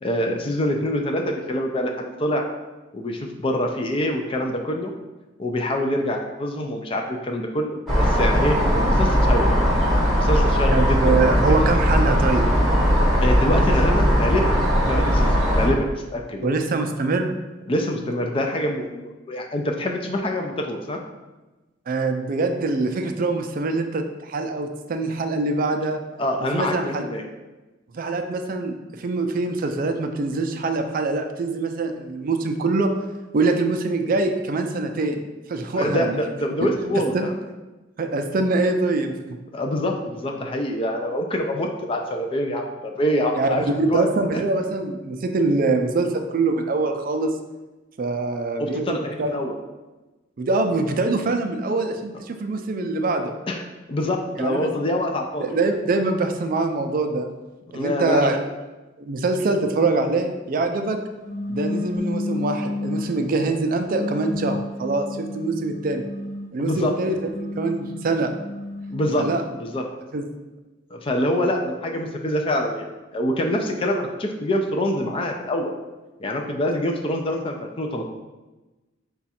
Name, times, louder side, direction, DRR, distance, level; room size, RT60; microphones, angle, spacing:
voice 1, 0.0-2.5 2.9-4.9 5.4-9.5 10.2-11.5 13.2-14.5 14.9-16.5 17.7-21.0 26.2-27.2 35.7-37.3 39.5-44.1 48.6-49.5 53.5-53.6 53.9-55.6 57.7-58.3 66.6-66.9 68.9-69.8 70.9-75.7 76.2-78.1, left 1 dB, 30° left, 2 dB, 0.4 m, -25 dB
sound 1, 7.9-15.7, equal, ahead, 1.0 m, -19 dB
voice 2, 10.7-12.4 16.4-17.3 21.9-26.0 26.5-27.1 27.9-32.9 33.3-36.2 37.1-37.3 38.0-39.1 43.3-47.3 48.0-49.4 50.4-53.3 54.4-54.7 55.4-57.3 57.7-58.4 59.0-61.0 61.5-66.0 66.5-68.3 69.2-69.4 70.1-70.2, right 3 dB, 45° right, 6 dB, 0.4 m, -24 dB
sound 2, 61.2-63.3 63.9-66.6 67.1-69.4, left 2 dB, 70° left, 0.8 m, -31 dB
4.9 x 2.3 x 4.2 m, 1.1 s
head